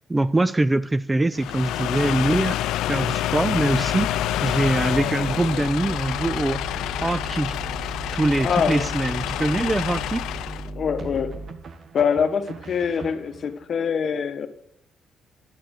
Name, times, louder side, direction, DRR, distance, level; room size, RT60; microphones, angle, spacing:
voice 1, 0.1-2.6 2.9-6.6 7.0-7.6 8.1-10.3, right 2 dB, 20° right, 0.4 m, -23 dB
sound 1, 1.3-10.7, left 13 dB, 90° left, 0.4 m, -27 dB
sound 2, 2.3-2.5 3.5-11.5, right 2 dB, 15° left, 0.9 m, -36 dB
voice 2, 8.4-8.8 10.7-11.4 11.9-14.5, left 6 dB, 55° left, 1.1 m, -24 dB
sound 3, 11.0-13.6, right 5 dB, 50° right, 1.0 m, -43 dB
10.5 x 9.1 x 6.4 m
cardioid pair, 90°, 0 cm